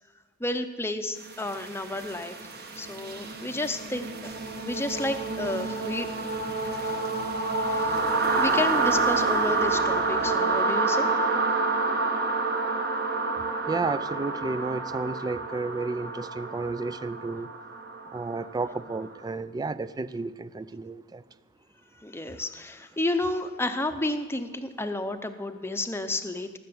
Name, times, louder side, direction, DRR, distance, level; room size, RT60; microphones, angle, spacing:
voice 1, 0.4-2.4 2.8-4.3 4.6-6.1 7.7-7.9 8.4-11.1 22.0-26.6, left 2 dB, 10° left, 7 dB, 0.7 m, -31 dB
sound 1, 1.3-19.1, right 3 dB, 45° right, 1.4 m, -28 dB
voice 2, 13.7-17.5 18.1-21.2, right 3 dB, 20° right, 16 dB, 0.3 m, -32 dB
19.0 x 6.7 x 7.9 m, 1.4 s
head